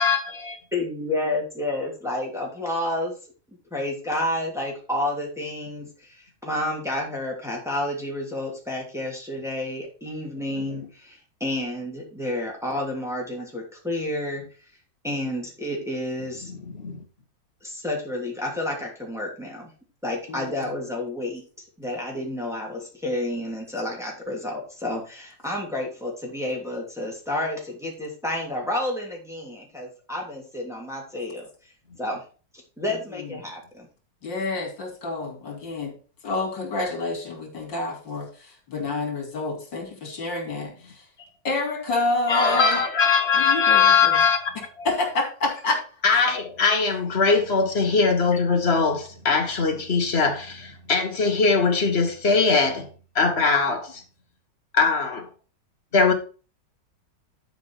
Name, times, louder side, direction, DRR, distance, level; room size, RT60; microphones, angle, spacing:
voice 1, 0.0-0.6 16.5-17.0 42.3-44.5 44.8-44.9 46.0-52.9 53.1-54.0 54.7-55.3 55.9-56.1, left 5 dB, 35° left, 1.6 m, -21 dB
voice 2, 0.7-3.1 3.7-14.4 15.0-16.5 17.6-19.7 20.0-21.4 21.8-31.5 32.0-32.2 32.8-33.9, left 1 dB, ahead, 2.9 m, -30 dB
voice 3, 32.9-33.3 34.2-35.9 36.2-40.9 41.4-42.8 43.4-44.2 44.8-45.8 46.1-46.2, left 2 dB, 75° left, 3.7 m, -28 dB
11.5 x 5.0 x 4.7 m
omnidirectional pair, 2.0 m